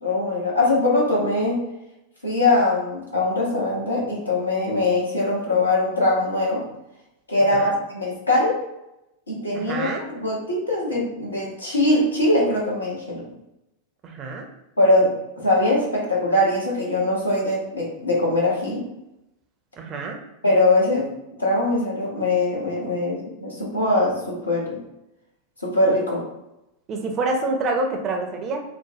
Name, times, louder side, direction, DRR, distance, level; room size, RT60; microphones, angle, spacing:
voice 1, 0.0-1.6 2.2-6.6 7.3-8.6 9.3-13.2 14.8-18.8 20.4-21.1 21.4-24.8 25.6-26.2, left 2 dB, 80° left, -4 dB, 0.9 m, -22 dB
voice 2, 9.5-10.0 14.0-14.4 19.8-20.2 26.9-28.6, right 2 dB, 30° right, 2 dB, 0.5 m, -27 dB
2.9 x 2.1 x 2.7 m, 0.90 s
figure-of-eight pair, 90°, 0 cm